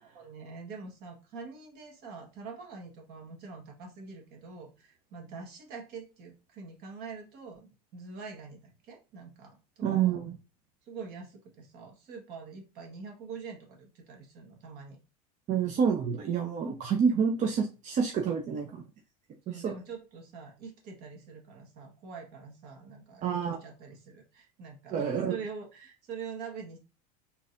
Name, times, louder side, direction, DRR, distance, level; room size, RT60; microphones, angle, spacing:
voice 1, 0.1-10.2 10.8-15.0 19.4-26.8, right 5 dB, 55° right, 1 dB, 1.4 m, -45 dB
voice 2, 9.8-10.4 15.5-18.8 19.5-19.7 23.2-23.6 24.9-25.3, right 7 dB, 35° right, 2 dB, 0.6 m, -28 dB
3.8 x 2.8 x 2.5 m, 0.31 s
supercardioid pair, 105°, 20 cm